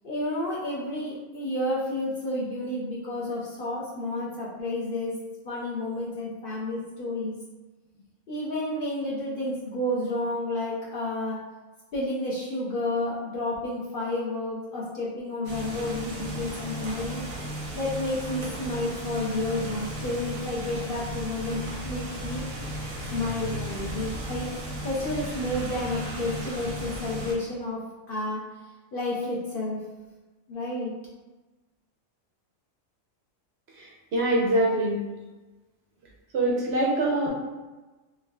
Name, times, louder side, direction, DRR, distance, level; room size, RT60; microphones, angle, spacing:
voice 1, 0.0-5.1 5.4-7.4 8.3-11.4 11.9-17.2 17.7-22.4 23.1-24.5 24.8-27.8 28.1-28.4 28.9-29.8 30.5-30.9, left 1 dB, 55° left, -6 dB, 0.6 m, -30 dB
sound 1, 15.4-27.3, right 1 dB, 85° right, 1.2 m, -35 dB
voice 2, 33.8-35.0 36.3-37.3, right 1 dB, 65° right, -3 dB, 0.7 m, -24 dB
4.7 x 2.1 x 2.2 m, 1.2 s
omnidirectional pair, 1.4 m